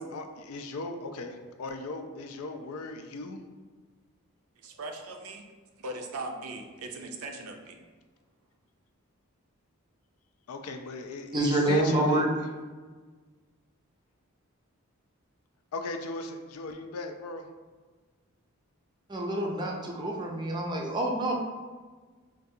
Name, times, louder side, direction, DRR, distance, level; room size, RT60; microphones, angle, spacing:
voice 1, 0.0-3.5 10.5-12.3 15.7-17.5, left 3 dB, 80° left, 6 dB, 0.4 m, -37 dB
voice 2, 4.6-5.4 5.8-7.8, right 2 dB, 85° right, 3 dB, 0.5 m, -39 dB
voice 3, 11.3-12.3 19.1-21.3, right 1 dB, 20° right, -1 dB, 0.4 m, -27 dB
4.6 x 2.4 x 2.6 m, 1.4 s
head